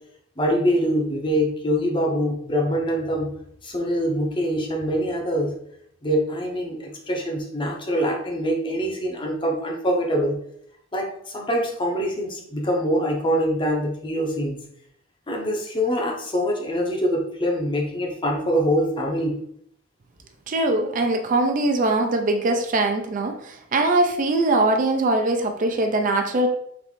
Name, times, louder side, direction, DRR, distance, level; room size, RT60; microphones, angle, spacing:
voice 1, 0.4-3.3 3.6-5.5 6.0-10.4 10.9-14.6 15.3-19.4, equal, 25° left, 0 dB, 0.7 m, -24 dB
voice 2, 20.5-26.5, right 2 dB, 40° right, 4 dB, 0.4 m, -22 dB
4.0 x 3.1 x 3.1 m, 0.70 s
head